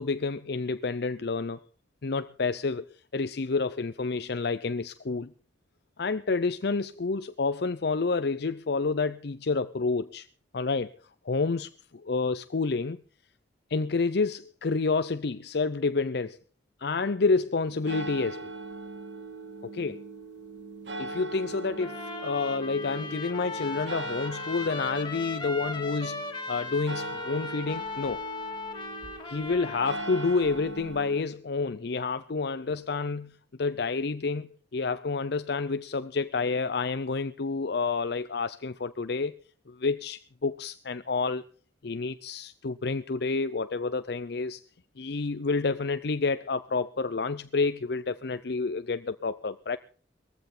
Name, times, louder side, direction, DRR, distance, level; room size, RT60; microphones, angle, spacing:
voice 1, 0.0-1.6 2.0-2.9 3.1-5.3 6.0-10.3 10.5-10.9 11.2-13.0 13.7-16.4 16.8-18.5 19.7-20.0 21.0-28.2 29.3-39.3 39.7-41.4 41.8-44.6 45.0-49.8, left 4 dB, 65° left, 0.6 m, -29 dB
sound 1, 17.6-31.2, right 2 dB, 75° right, 2.0 m, -41 dB
Trumpet, 21.8-30.6, left 3 dB, 25° left, 2.8 m, -38 dB
19.5 x 15.0 x 3.9 m
head